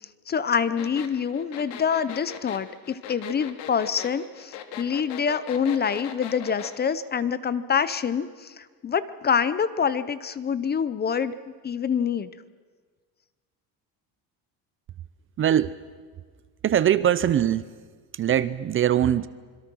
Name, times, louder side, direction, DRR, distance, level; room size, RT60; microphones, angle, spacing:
voice 1, 0.3-11.3 11.6-12.3, left 7 dB, 25° left, 15 dB, 0.6 m, -26 dB
sound 1, 0.8-6.8, left 9 dB, 85° left, 2.3 m, -39 dB
voice 2, 15.4-15.7 16.6-17.6 18.1-19.3, right 10 dB, 35° right, 16 dB, 0.6 m, -21 dB
26.0 x 22.0 x 6.2 m, 1.5 s
cardioid pair, 155°, 39 cm